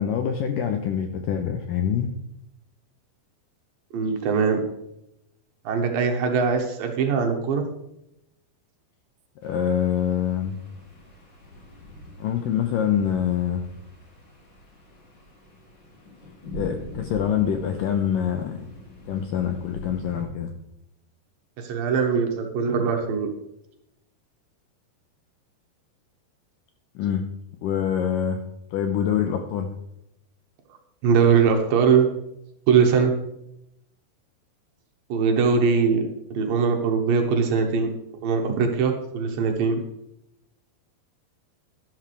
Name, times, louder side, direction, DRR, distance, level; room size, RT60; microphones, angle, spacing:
voice 1, 0.0-2.1 9.4-10.6 12.2-13.6 16.5-18.7 19.1-20.5 27.0-27.3 27.6-28.4 28.7-29.7, left 8 dB, 80° left, 6 dB, 2.0 m, -25 dB
voice 2, 3.9-4.6 5.7-7.7 21.6-23.3 31.0-32.1 32.7-33.1 35.1-36.0 36.3-38.0 38.2-39.8, right 6 dB, 70° right, 3 dB, 2.6 m, -21 dB
sound 1, 9.4-20.2, left 1 dB, 35° left, 2.4 m, -43 dB
12.0 x 11.5 x 3.3 m, 0.82 s
omnidirectional pair, 4.7 m